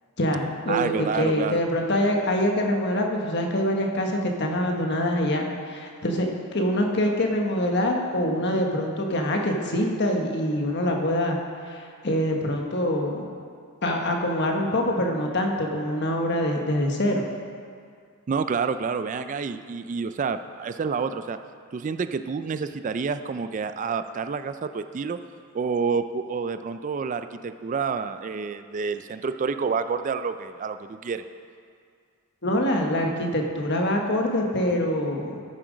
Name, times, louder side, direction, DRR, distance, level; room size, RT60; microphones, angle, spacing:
voice 1, 0.2-11.4 11.7-13.3 13.8-17.2 32.4-35.4, left 1 dB, 55° left, 2 dB, 1.3 m, -25 dB
voice 2, 0.7-1.6 18.3-21.4 21.7-25.2 25.5-31.2, right 5 dB, 35° right, 10 dB, 0.3 m, -28 dB
13.5 x 7.7 x 5.1 m, 2.2 s
head